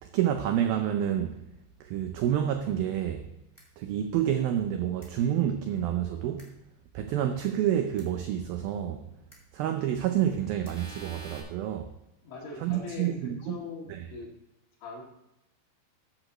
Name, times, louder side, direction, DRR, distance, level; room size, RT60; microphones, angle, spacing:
voice 1, 0.0-1.4 1.8-3.3 3.8-6.5 6.9-9.1 9.5-11.9 12.6-13.6 13.9-14.1, right 10 dB, 85° right, 2.1 m, -28 dB
sound 1, 3.6-3.7 5.0-5.1 6.4-6.5 8.0-8.1 9.3-9.4 10.6-11.4, right 1 dB, 10° left, 1.4 m, -46 dB
voice 2, 12.2-13.1 13.4-14.3 14.8-15.0, left 4 dB, 90° left, 4.9 m, -40 dB
14.0 x 10.0 x 3.1 m
omnidirectional pair, 5.1 m